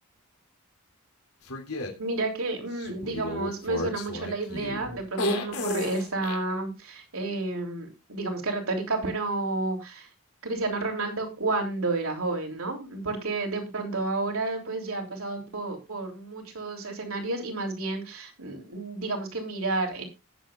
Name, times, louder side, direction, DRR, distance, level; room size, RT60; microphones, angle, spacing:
sound 1, 1.5-1.9 2.8-6.4, left 1 dB, 85° left, 3.2 m, -32 dB
voice 1, 2.0-10.1 10.4-20.0, right 2 dB, 70° right, 2 dB, 3.4 m, -31 dB
19.0 x 7.8 x 2.5 m, 0.25 s
head